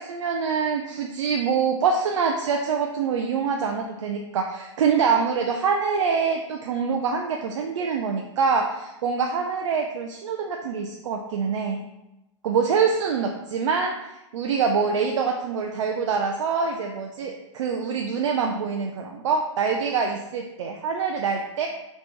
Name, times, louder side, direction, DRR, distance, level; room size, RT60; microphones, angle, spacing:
voice 1, 0.0-11.8 12.4-21.7, right 5 dB, 65° right, 2 dB, 0.4 m, -25 dB
4.0 x 2.9 x 3.1 m, 0.94 s
hypercardioid pair, 120°, 16 cm